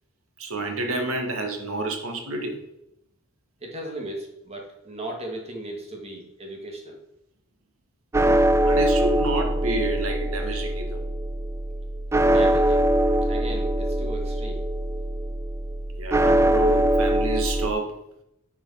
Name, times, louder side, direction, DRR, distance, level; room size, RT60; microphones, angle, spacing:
voice 1, 0.4-2.6 8.6-11.1 16.0-17.9, right 2 dB, 80° right, 4 dB, 1.8 m, -29 dB
voice 2, 3.6-7.0 12.2-12.9 13.2-14.7, right 1 dB, 30° right, 0 dB, 2.2 m, -36 dB
sound 1, 8.1-17.7, right 1 dB, 15° right, 0.3 m, -22 dB
9.8 x 5.6 x 5.6 m, 0.83 s
head